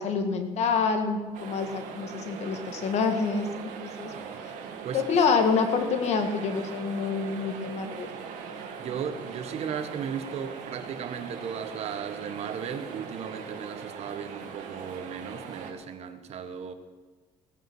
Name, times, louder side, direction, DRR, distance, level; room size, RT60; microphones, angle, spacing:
voice 1, 0.0-4.1 4.9-8.1, left 5 dB, 60° left, 7 dB, 1.8 m, -27 dB
sound 1, 1.3-15.7, right 6 dB, 80° right, 1.9 m, -40 dB
voice 2, 8.8-16.7, right 7 dB, 55° right, 9 dB, 1.4 m, -36 dB
17.0 x 9.0 x 6.2 m, 1.3 s
cardioid pair, 125°, 13 cm